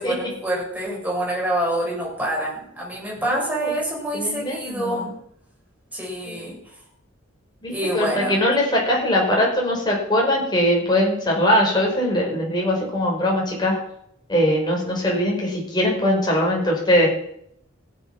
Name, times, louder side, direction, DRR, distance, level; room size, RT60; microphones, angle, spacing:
voice 1, 0.0-5.2 5.9-6.8 7.7-8.5, right 1 dB, 10° right, -4 dB, 6.9 m, -27 dB
voice 2, 3.2-3.7 4.1-5.1 6.3-6.5 7.6-13.8 14.3-17.1, left 1 dB, 20° left, -2 dB, 5.4 m, -21 dB
16.0 x 8.7 x 6.0 m, 0.69 s
head